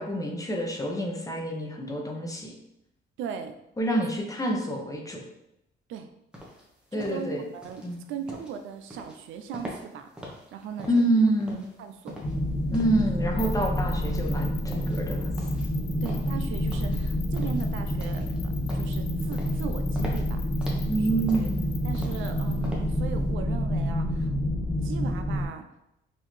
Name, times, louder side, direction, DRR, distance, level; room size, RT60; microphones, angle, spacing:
voice 1, 0.0-2.5 3.8-5.2 6.9-7.4 7.8-8.0 10.9-11.6 12.7-15.3 20.9-21.7, right 1 dB, 15° left, 0 dB, 0.8 m, -27 dB
voice 2, 3.2-3.5 4.7-4.8 5.9-6.1 6.9-10.1 10.5-11.0 11.8-12.2 16.0-20.5 21.0-21.5 21.8-24.3 24.8-25.7, right 7 dB, 80° right, 7 dB, 0.4 m, -38 dB
sound 1, 6.3-23.2, equal, 5° right, 1.0 m, -44 dB
sound 2, 12.2-25.5, equal, 45° left, 1.1 m, -28 dB
sound 3, 13.4-22.5, left 11 dB, 85° left, 0.5 m, -44 dB
4.0 x 2.7 x 3.1 m, 0.85 s
cardioid pair, 90°, 20 cm